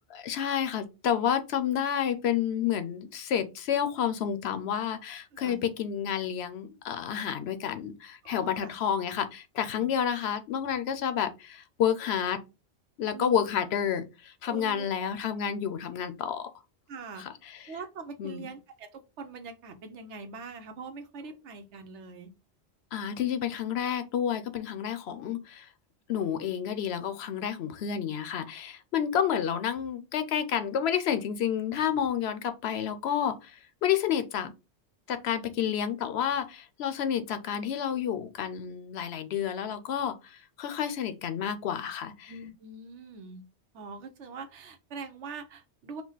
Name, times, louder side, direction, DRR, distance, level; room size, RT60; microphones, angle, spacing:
voice 1, 0.1-12.4 13.0-16.5 17.2-17.6 18.2-18.5 22.9-25.7 26.1-34.5 35.1-42.3, left 9 dB, 70° left, 0.8 m, -30 dB
voice 2, 5.3-5.7 8.2-8.7 9.8-9.9 13.1-13.5 14.4-14.9 16.9-17.2 17.7-22.3 42.3-43.4 43.7-46.0, right 4 dB, 85° right, 1.1 m, -43 dB
4.7 x 2.2 x 3.9 m
omnidirectional pair, 1.2 m